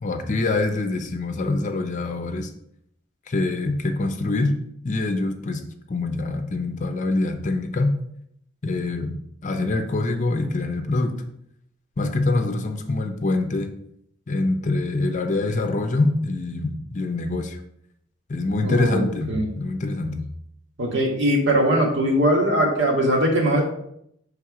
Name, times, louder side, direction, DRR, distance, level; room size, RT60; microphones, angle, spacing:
voice 1, 0.0-2.5 3.3-4.6 4.8-5.6 5.9-7.9 8.6-9.1 9.4-11.2 12.0-13.7 14.3-17.6 18.3-20.3, left 2 dB, 40° left, 6 dB, 0.6 m, -24 dB
voice 2, 18.6-19.5 20.8-23.6, right 1 dB, 70° right, 0 dB, 1.6 m, -21 dB
6.1 x 3.5 x 4.7 m, 0.73 s
head